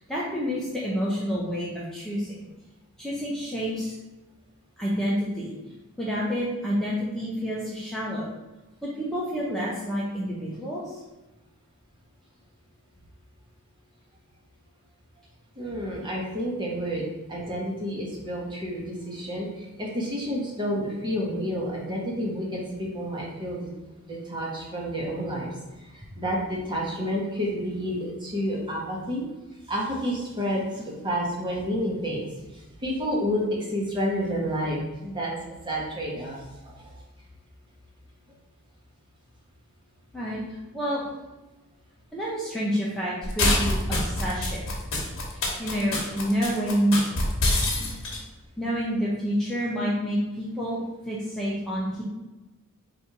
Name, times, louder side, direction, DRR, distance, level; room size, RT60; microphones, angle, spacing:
voice 1, 0.0-2.3 3.0-3.9 4.8-5.5 6.0-8.3 8.8-11.0 40.1-40.4 40.7-41.0 42.1-44.7 45.3-47.0 48.6-50.8 51.1-52.0, equal, ahead, -7 dB, 0.6 m, -28 dB
voice 2, 15.5-23.7 24.1-25.5 25.9-29.3 29.7-35.3 35.6-36.9 47.7-47.9, equal, 20° right, -4 dB, 1.1 m, -30 dB
sound 1, 43.2-48.2, left 1 dB, 60° left, 1.2 m, -25 dB
4.2 x 2.7 x 4.6 m, 1.1 s
head